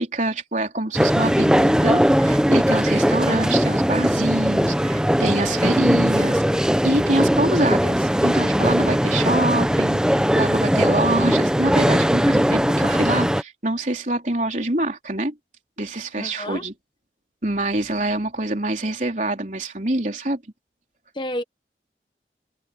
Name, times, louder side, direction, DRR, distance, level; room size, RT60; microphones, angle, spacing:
voice 1, 0.0-15.3 15.8-16.7 17.4-20.4, right 2 dB, 45° right, 3.9 m, -25 dB
sound 1, 0.9-13.4, equal, 5° right, 0.9 m, -19 dB
voice 2, 16.1-16.6 21.1-21.4, left 1 dB, 25° left, 1.0 m, -30 dB
open air
head